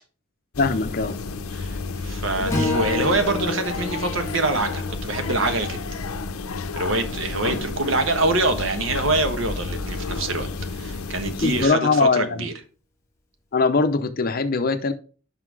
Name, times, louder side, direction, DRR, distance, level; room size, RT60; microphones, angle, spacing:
sound 1, 0.5-11.7, left 4 dB, 80° left, 0.6 m, -31 dB
voice 1, 0.6-1.2 11.4-12.5 13.5-14.9, left 4 dB, 45° left, 0.6 m, -21 dB
voice 2, 1.5-5.8 6.7-12.5, right 2 dB, 60° right, 1.1 m, -25 dB
Strum, 2.5-6.8, left 2 dB, 15° left, 1.5 m, -31 dB
5.8 x 5.7 x 4.7 m
head